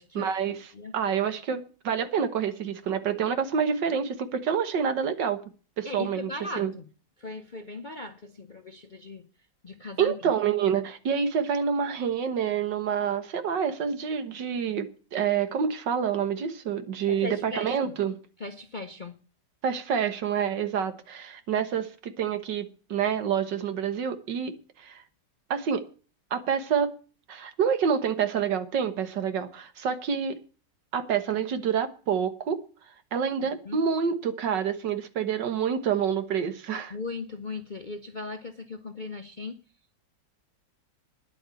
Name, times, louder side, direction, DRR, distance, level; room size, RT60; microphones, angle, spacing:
voice 1, 0.2-5.4 5.8-6.3 6.6-6.7 10.0-18.2 19.6-25.0 25.5-25.8 26.3-26.9 27.3-30.4 30.9-32.6 33.1-37.0, right 7 dB, 75° right, 1.9 m, -27 dB
voice 2, 5.8-6.9 7.2-9.3 9.6-10.1 17.1-17.9 18.4-19.2 33.7-33.8 36.9-39.6, left 3 dB, 45° left, 0.6 m, -38 dB
10.5 x 8.2 x 8.3 m
omnidirectional pair, 1.9 m